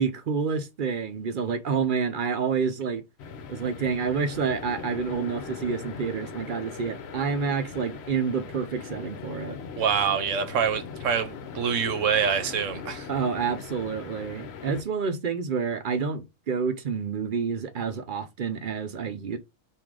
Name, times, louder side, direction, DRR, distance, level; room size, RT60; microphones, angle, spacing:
voice 1, 0.0-3.0 3.5-9.6 13.1-19.4, right 6 dB, 55° right, 0.6 m, -28 dB
sound 1, 3.2-14.8, left 6 dB, 60° left, 0.8 m, -40 dB
voice 2, 9.8-13.1, right 7 dB, 75° right, 1.0 m, -26 dB
3.7 x 2.6 x 4.6 m
omnidirectional pair, 1.4 m